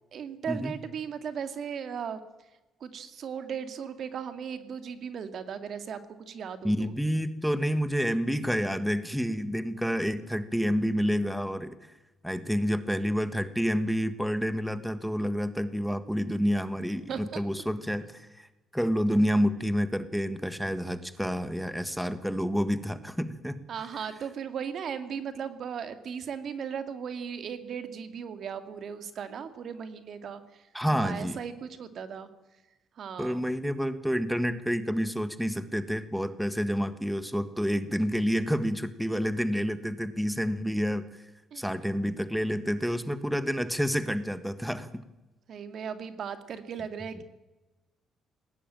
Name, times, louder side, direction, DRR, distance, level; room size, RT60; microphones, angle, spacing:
voice 1, 0.1-2.2 2.8-6.9 17.1-17.4 23.7-32.3 33.0-33.4 41.5-41.6 45.5-47.2, right 7 dB, 60° right, 9 dB, 2.3 m, -37 dB
voice 2, 6.6-11.7 12.2-18.5 18.7-23.6 30.7-31.4 33.2-41.2 41.5-44.9, equal, ahead, 11 dB, 1.5 m, -29 dB
20.0 x 17.5 x 9.0 m, 1.1 s
cardioid pair, 90°, 0 cm